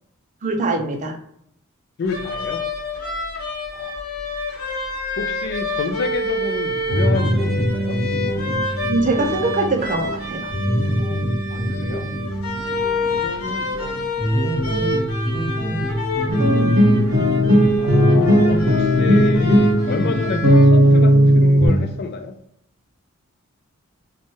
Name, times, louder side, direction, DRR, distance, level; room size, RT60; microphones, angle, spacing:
voice 1, 0.4-1.2 8.9-10.5, right 3 dB, 35° right, 3 dB, 0.4 m, -22 dB
voice 2, 2.0-2.6 3.7-3.9 5.2-8.0 11.5-12.1 13.1-14.0 14.8-15.0 15.3-15.6 17.8-22.3, left 4 dB, 50° left, 6 dB, 0.4 m, -29 dB
sound 1, 2.1-20.6, left 2 dB, 75° left, 0.8 m, -28 dB
sound 2, 6.9-21.7, equal, 5° right, 1.1 m, -25 dB
sound 3, 16.3-21.8, equal, 75° right, 0.7 m, -15 dB
3.0 x 2.2 x 2.6 m, 0.74 s
head